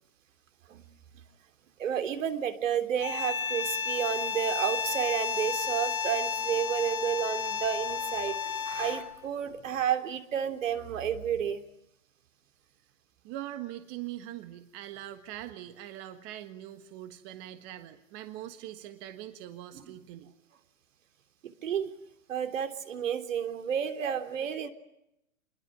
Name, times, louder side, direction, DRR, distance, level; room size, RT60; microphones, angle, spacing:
voice 1, 1.8-11.6 19.7-19.9 21.6-21.9 22.3-24.7, right 9 dB, 65° right, 8 dB, 3.4 m, -31 dB
sound 1, 3.0-9.2, left 7 dB, 80° left, 2.7 m, -32 dB
voice 2, 13.2-20.3, right 13 dB, 25° right, 9 dB, 1.5 m, -42 dB
27.0 x 21.5 x 9.9 m, 0.84 s
hypercardioid pair, 150°, 41 cm